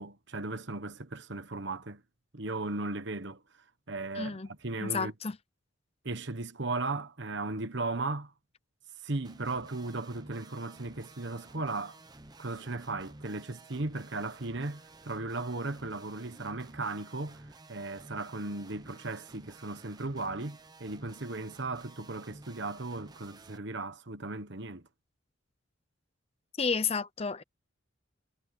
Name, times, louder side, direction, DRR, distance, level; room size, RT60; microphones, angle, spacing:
voice 1, 0.0-2.0 2.3-3.4 3.9-5.1 6.0-8.3 9.0-12.0 12.4-24.8, right 3 dB, 60° right, 1.3 m, -36 dB
voice 2, 4.1-4.5 4.8-5.4 26.6-27.4, left 5 dB, 30° left, 0.7 m, -31 dB
sound 1, 9.2-23.6, right 2 dB, 20° right, 1.0 m, -53 dB
head